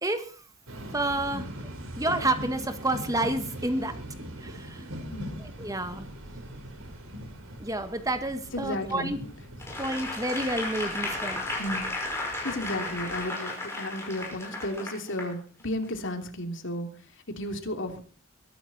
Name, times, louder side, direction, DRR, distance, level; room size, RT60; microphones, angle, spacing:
voice 1, 0.0-0.4 0.9-1.4 2.0-3.9 4.4-4.8 5.6-6.1 7.6-9.2 9.8-11.5, right 1 dB, 15° right, 8 dB, 1.8 m, -29 dB
sound 1, 0.7-13.2, equal, 70° right, 4.1 m, -42 dB
voice 2, 8.5-9.1 11.6-11.9 12.4-16.9 17.4-18.0, left 1 dB, 60° left, 4 dB, 3.2 m, -33 dB
Applause / Crowd, 9.6-15.3 15.8-16.0, left 2 dB, 10° left, 5.6 m, -34 dB
22.5 x 11.5 x 4.3 m, 0.38 s
head